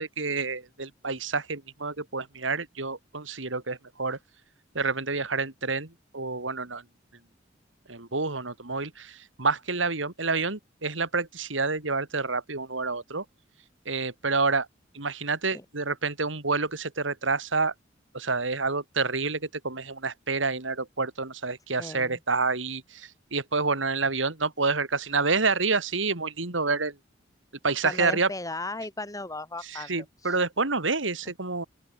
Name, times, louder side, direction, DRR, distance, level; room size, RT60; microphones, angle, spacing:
voice 1, 0.0-4.2 4.7-6.8 7.9-13.2 13.9-14.7 14.9-17.7 18.1-26.9 27.6-28.3 29.7-31.6, right 4 dB, 85° right, 3.0 m, -28 dB
voice 2, 21.8-22.2 27.8-29.9 30.2-30.4, left 2 dB, 20° left, 5.1 m, -36 dB
open air
head